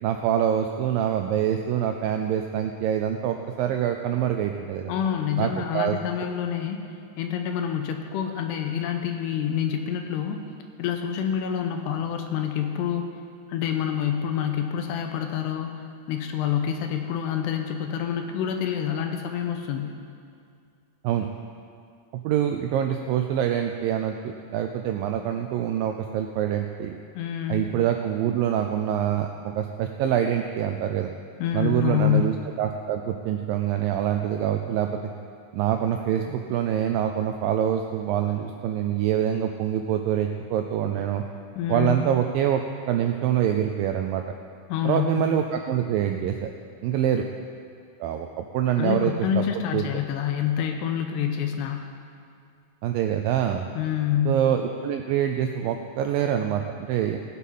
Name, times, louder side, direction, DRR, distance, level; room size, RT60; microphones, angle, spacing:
voice 1, 0.0-4.9 5.4-6.0 21.0-21.3 22.2-26.9 27.5-29.3 29.6-31.1 31.5-35.0 35.5-41.2 41.7-42.6 42.9-44.2 44.8-46.5 46.8-47.2 48.0-48.3 48.5-49.4 49.7-49.8 52.8-53.7 54.3-57.2, right 10 dB, 85° right, 5 dB, 2.0 m, -25 dB
voice 2, 4.9-6.8 7.2-10.4 10.8-13.1 13.5-20.0 27.1-27.7 31.4-32.4 41.5-42.2 44.7-45.2 48.8-52.0 53.7-54.4, left 9 dB, 85° left, 4 dB, 2.9 m, -27 dB
18.5 x 8.3 x 5.5 m, 2.3 s
omnidirectional pair, 4.7 m